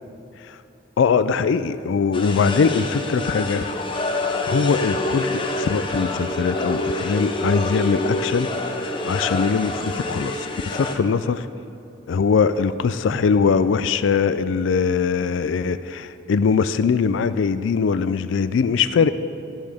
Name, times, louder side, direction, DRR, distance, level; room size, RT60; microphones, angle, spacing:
voice 1, 1.0-3.7 4.4-8.5 9.0-11.5 12.1-19.1, left 5 dB, 75° left, 13 dB, 0.3 m, -21 dB
sound 1, 2.1-10.9, left 2 dB, 25° left, 0.7 m, -27 dB
14.0 x 11.5 x 3.5 m, 2.7 s
head